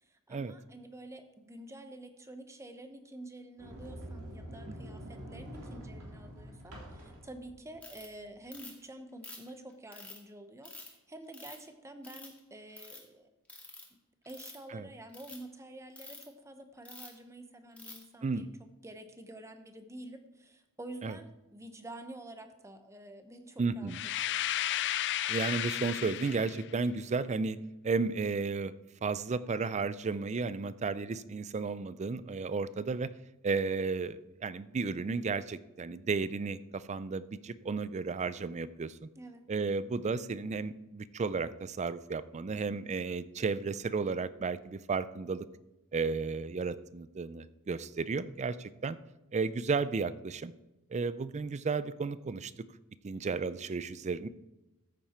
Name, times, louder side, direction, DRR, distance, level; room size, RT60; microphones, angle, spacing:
voice 1, 0.0-13.3 14.2-18.5 18.8-23.9 24.3-24.4 39.2-39.5, right 1 dB, 15° right, 7 dB, 0.9 m, -49 dB
Sliding door, 3.6-8.4, equal, 90° right, 3.2 m, -46 dB
Ratchet pawl, 7.8-8.1 8.5-8.8 9.2-10.2 10.6-10.9 11.3-11.7 12.0-12.4 12.7-13.0 13.5-13.8 14.2-14.6 15.1-15.4 16.0-16.2 16.8-17.2 17.8-18.0, left 2 dB, 5° left, 2.2 m, -48 dB
voice 2, 23.6-24.1 25.3-27.6 27.8-28.7 29.0-33.1 33.4-39.1 39.5-45.5 45.9-49.0 49.3-50.5 50.9-52.5 53.0-54.3, right 4 dB, 30° right, 16 dB, 0.4 m, -33 dB
sound 1, 23.9-26.7, left 13 dB, 55° left, 0.4 m, -33 dB
14.0 x 8.9 x 4.3 m, 0.98 s
head